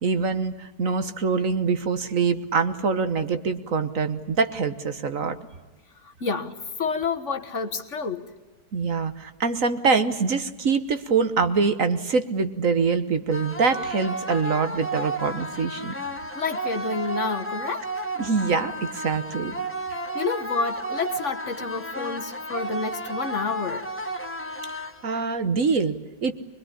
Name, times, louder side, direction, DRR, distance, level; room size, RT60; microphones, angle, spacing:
voice 1, 0.0-5.4 8.7-15.9 18.2-19.5 24.8-26.3, right 5 dB, 55° right, 10 dB, 1.6 m, -24 dB
voice 2, 6.0-8.3 16.3-17.9 20.1-23.9, left 4 dB, 50° left, 7 dB, 1.7 m, -29 dB
sound 1, 13.3-25.3, right 1 dB, 10° left, 1.5 m, -33 dB
24.5 x 21.5 x 10.0 m, 1.1 s
omnidirectional pair, 1.7 m